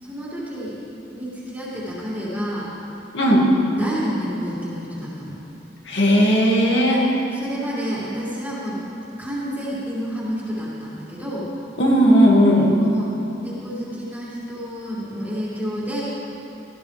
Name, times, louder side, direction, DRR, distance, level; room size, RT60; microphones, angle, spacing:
voice 1, 0.0-0.8 1.1-2.7 3.6-5.4 6.8-7.0 7.3-11.5 12.6-13.1 13.4-16.0, equal, 10° right, -9 dB, 2.5 m, -29 dB
voice 2, 3.1-3.5 5.9-7.1 11.8-12.7, equal, 70° left, -3 dB, 2.2 m, -16 dB
16.5 x 13.5 x 3.5 m, 3.0 s
head